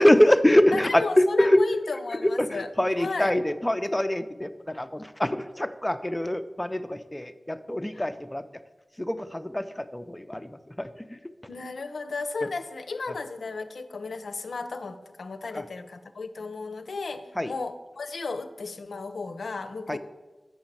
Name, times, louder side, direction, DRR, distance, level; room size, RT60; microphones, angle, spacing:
voice 1, 0.0-1.6 2.2-8.4 9.0-10.5 10.8-10.9 15.5-15.6 17.4-17.5 19.9-20.0, left 1 dB, 15° left, 10 dB, 0.5 m, -24 dB
voice 2, 0.7-2.7 3.0-3.3 7.9-8.0 11.5-20.0, left 4 dB, 90° left, 10 dB, 0.5 m, -34 dB
7.1 x 5.2 x 7.3 m, 1.2 s
wide cardioid pair, 65°, 0 cm